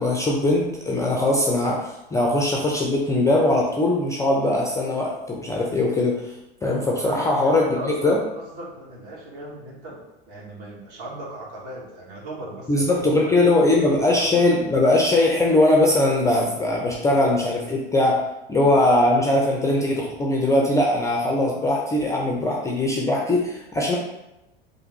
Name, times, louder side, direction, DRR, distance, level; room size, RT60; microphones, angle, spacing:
voice 1, 0.0-6.3 6.6-8.2 12.7-18.2 18.5-24.0, left 2 dB, 10° left, -2 dB, 0.4 m, -20 dB
voice 2, 7.0-14.3, right 1 dB, 50° right, -4 dB, 1.3 m, -38 dB
3.4 x 2.6 x 3.0 m, 0.95 s
hypercardioid pair, 90°, 30 cm